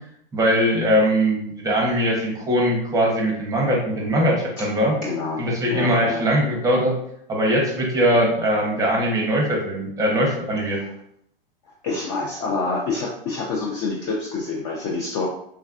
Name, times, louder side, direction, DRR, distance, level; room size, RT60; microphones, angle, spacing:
voice 1, 0.3-5.0 5.4-6.9 7.3-10.8, equal, 10° right, -1 dB, 0.6 m, -21 dB
voice 2, 5.0-6.2 10.7-10.9 11.8-15.3, left 3 dB, 30° left, -2 dB, 0.4 m, -27 dB
3.3 x 2.2 x 2.3 m, 0.74 s
hypercardioid pair, 120°, 29 cm